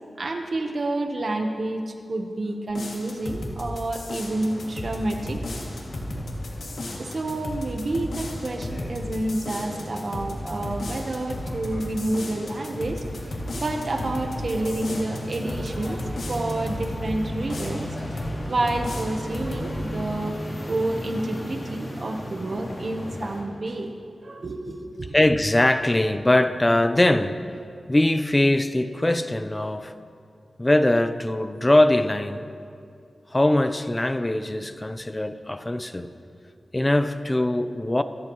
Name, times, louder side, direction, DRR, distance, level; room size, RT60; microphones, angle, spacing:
voice 1, 0.2-5.4 7.0-13.0 13.5-17.9 18.5-23.9 24.2-25.1, right 2 dB, 55° right, 1.1 m, -29 dB
sound 1, 2.7-17.0 17.5-18.4 18.7-19.7, left 1 dB, 85° left, 2.4 m, -35 dB
sound 2, 4.2-23.4, equal, 45° left, 3.4 m, -36 dB
voice 2, 25.1-27.5 27.9-29.9 30.6-32.5 33.3-36.1 36.7-38.0, left 1 dB, 20° left, 0.6 m, -21 dB
26.0 x 14.0 x 3.1 m
wide cardioid pair, 120°, 0 cm